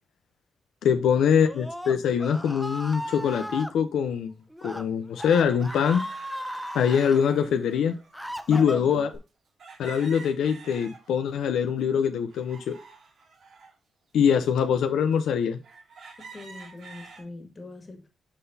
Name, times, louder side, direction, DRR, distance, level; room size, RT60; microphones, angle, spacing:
voice 1, 0.8-4.3 4.6-6.0 6.7-8.0 8.5-9.1 9.8-12.7 14.1-15.6, left 7 dB, 85° left, 0.5 m, -23 dB
Screaming, 1.3-3.7 4.5-4.8 5.1-7.2 7.8-9.2, equal, ahead, 0.7 m, -36 dB
sound 1, 4.3-4.4 5.4-8.2 9.6-11.3 11.8-13.7 14.4-14.5 15.1-15.2 15.6-17.2, right 4 dB, 70° right, 2.4 m, -48 dB
voice 2, 8.5-9.0 16.2-18.1, left 2 dB, 30° left, 1.8 m, -43 dB
11.0 x 3.8 x 2.7 m
cardioid pair, 90°, 0 cm